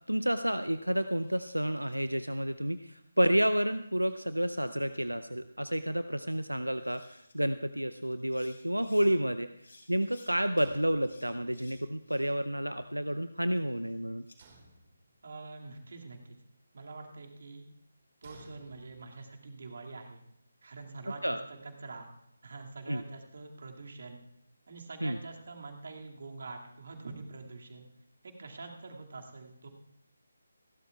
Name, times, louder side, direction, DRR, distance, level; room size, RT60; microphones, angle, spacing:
voice 1, 0.1-9.5 9.9-14.2 21.2-21.4 22.9-23.0 25.0-25.2, equal, 85° right, 12 dB, 0.5 m, -30 dB
sound 1, 0.9-2.0 3.5-4.6 4.9-5.0 6.4-6.5 6.7-7.3 8.1-9.1 9.6-10.3 11.0-12.5 12.9-14.4, left 2 dB, 60° left, 4.8 m, -60 dB
sound 2, 10.6-11.7 14.4-15.4 18.2-19.3, right 3 dB, 30° right, 2.0 m, -58 dB
voice 2, 15.2-16.4 16.7-17.7 18.2-20.2 20.6-22.1 22.4-24.2 24.7-27.9 28.2-29.7, right 3 dB, 50° right, 2 dB, 2.2 m, -45 dB
29.0 x 12.0 x 2.4 m, 0.77 s
figure-of-eight pair, 150°, 0 cm